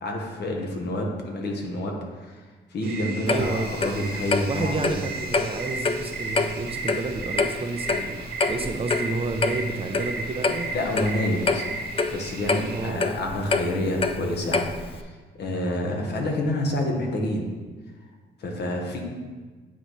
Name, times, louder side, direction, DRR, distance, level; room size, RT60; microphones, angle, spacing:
voice 1, 0.0-2.4 2.7-5.0 10.7-11.6 12.1-17.5 18.4-19.0, left 1 dB, 60° left, 1 dB, 1.2 m, -28 dB
sound 1, 2.8-12.9, right 3 dB, 55° right, 0.8 m, -35 dB
Clock, 3.3-15.0, left 4 dB, 30° left, 0.4 m, -28 dB
voice 2, 3.3-3.7 4.5-10.7 12.7-13.0, right 3 dB, 30° right, 5 dB, 0.5 m, -30 dB
8.9 x 4.0 x 3.1 m, 1.4 s
cardioid pair, 90°, 20 cm